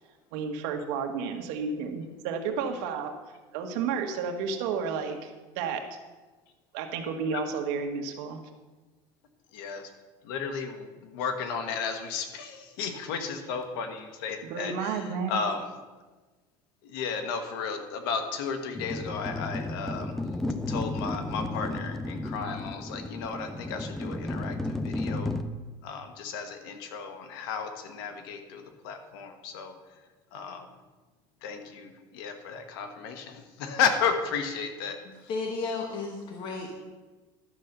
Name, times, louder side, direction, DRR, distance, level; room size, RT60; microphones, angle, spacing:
voice 1, 0.3-3.1 3.5-5.3 5.5-5.8 6.7-8.4 14.4-15.4, right 5 dB, 70° right, 4 dB, 1.5 m, -31 dB
voice 2, 9.5-9.9 10.2-15.7 16.8-20.1 20.7-25.3 25.8-29.7 30.3-30.7 31.4-35.0, left 6 dB, 90° left, 6 dB, 1.5 m, -33 dB
sound 1, 18.8-25.4, left 2 dB, 5° left, 0.5 m, -33 dB
voice 3, 35.0-36.9, left 3 dB, 45° left, 2 dB, 1.3 m, -34 dB
12.0 x 5.9 x 6.7 m, 1.3 s
cardioid pair, 150°, 12 cm